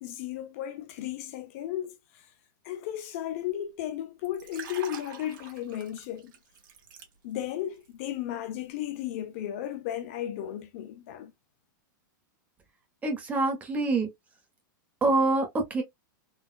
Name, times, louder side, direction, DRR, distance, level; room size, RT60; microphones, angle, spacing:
voice 1, 0.0-2.3 2.6-6.3 7.2-11.3, left 12 dB, 45° left, 0.4 m, -35 dB
Liquid, 4.2-7.6 7.9-8.1, right 8 dB, 70° right, 1.3 m, -45 dB
voice 2, 13.0-14.1 15.0-15.8, right 3 dB, 15° right, 0.9 m, -25 dB
3.8 x 2.2 x 2.3 m
supercardioid pair, 165°, 11 cm